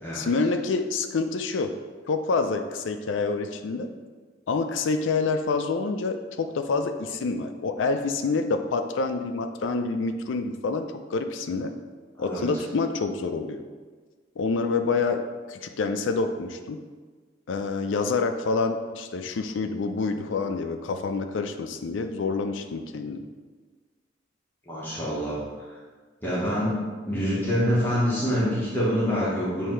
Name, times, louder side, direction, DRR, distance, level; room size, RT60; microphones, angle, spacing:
voice 1, 0.1-1.7 2.1-3.9 4.5-11.7 12.2-13.6 14.4-15.2 15.5-16.8 17.5-23.3, left 4 dB, 85° left, 7 dB, 0.4 m, -27 dB
voice 2, 12.2-12.5 24.7-25.8 26.2-29.7, equal, 10° left, -9 dB, 1.1 m, -26 dB
8.1 x 2.8 x 4.4 m, 1.5 s
head